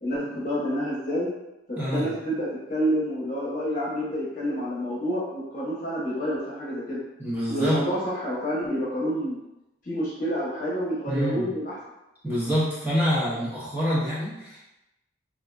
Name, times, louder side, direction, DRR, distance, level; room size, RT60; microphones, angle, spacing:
voice 1, 0.0-1.3 1.7-7.0 7.5-9.4 9.8-11.7, equal, 45° left, -7 dB, 1.0 m, -28 dB
voice 2, 1.7-2.1 7.2-7.8 11.1-11.5 12.2-14.6, equal, 10° right, -10 dB, 0.8 m, -26 dB
3.5 x 2.5 x 2.3 m, 0.95 s
head